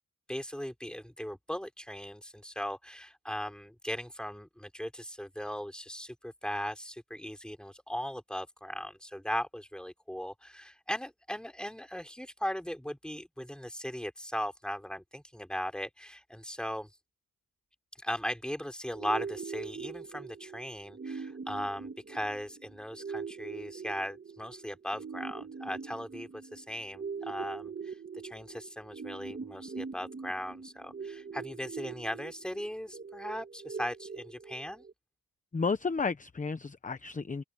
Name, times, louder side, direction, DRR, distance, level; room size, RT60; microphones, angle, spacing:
voice 1, 0.3-16.9 18.0-28.0 28.2-34.8, equal, ahead, 3.7 m, -38 dB
sound 1, 18.9-34.9, right 5 dB, 30° right, 1.7 m, -42 dB
voice 2, 35.5-37.4, left 4 dB, 20° left, 1.0 m, -32 dB
open air
cardioid pair, 95°, 35 cm